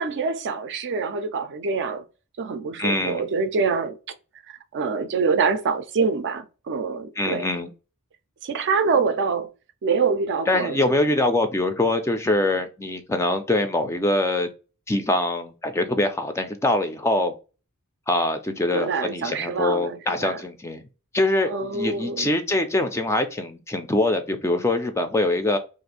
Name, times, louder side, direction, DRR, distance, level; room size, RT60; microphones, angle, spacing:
voice 1, 0.0-2.0 2.4-4.0 4.5-7.5 8.4-9.5 9.8-10.9 18.7-20.4 21.5-22.3, right 5 dB, 55° right, 0.4 m, -25 dB
voice 2, 2.8-3.2 7.2-7.7 10.5-14.5 14.9-17.3 18.1-20.8 21.1-25.6, left 2 dB, 10° left, 0.4 m, -23 dB
2.6 x 2.4 x 4.1 m
head